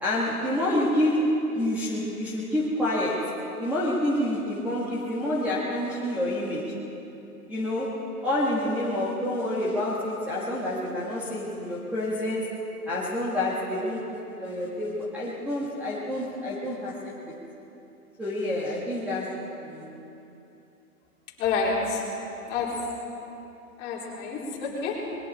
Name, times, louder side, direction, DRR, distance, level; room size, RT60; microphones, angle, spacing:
voice 1, 0.0-3.3 3.6-6.7 7.5-7.9 8.2-12.5 12.9-14.0 14.3-17.3 18.2-19.8, left 1 dB, 5° right, -7 dB, 1.5 m, -28 dB
voice 2, 21.4-22.0 22.5-22.7 23.8-25.0, left 5 dB, 20° left, -5 dB, 3.8 m, -28 dB
28.0 x 21.5 x 4.3 m, 2.9 s
hypercardioid pair, 155°, 46 cm